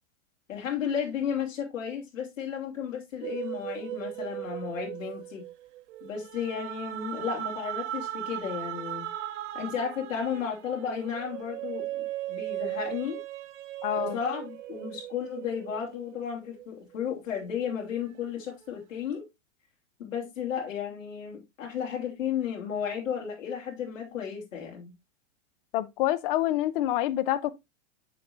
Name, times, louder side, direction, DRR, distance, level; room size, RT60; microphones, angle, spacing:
voice 1, 0.5-5.4 6.0-9.0 9.5-13.2 14.0-19.2 20.0-24.9, left 8 dB, 85° left, 3.2 m, -33 dB
sound 1, 3.2-17.0 17.4-19.0, right 13 dB, 70° right, 0.9 m, -38 dB
voice 2, 13.8-14.2 25.7-27.5, left 14 dB, 45° left, 0.6 m, -27 dB
6.9 x 6.8 x 2.6 m
supercardioid pair, 145°, 38 cm